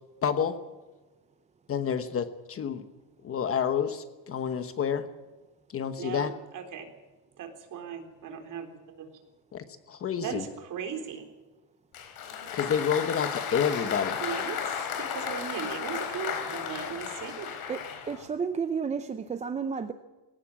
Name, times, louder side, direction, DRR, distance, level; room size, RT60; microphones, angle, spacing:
voice 1, 0.2-0.6 1.7-2.8 3.2-5.1 5.7-6.3 9.5-10.5 12.5-14.2, left 7 dB, 30° left, 10 dB, 1.1 m, -29 dB
voice 2, 6.0-6.9 7.4-9.1 10.2-11.3 14.2-17.6, right 7 dB, 40° right, 5 dB, 3.7 m, -38 dB
Applause, 11.9-18.3, left 7 dB, 50° left, 4.6 m, -34 dB
voice 3, 17.7-19.9, right 6 dB, 15° right, 9 dB, 0.6 m, -32 dB
19.5 x 17.5 x 7.4 m, 1.2 s
cardioid pair, 165°, 46 cm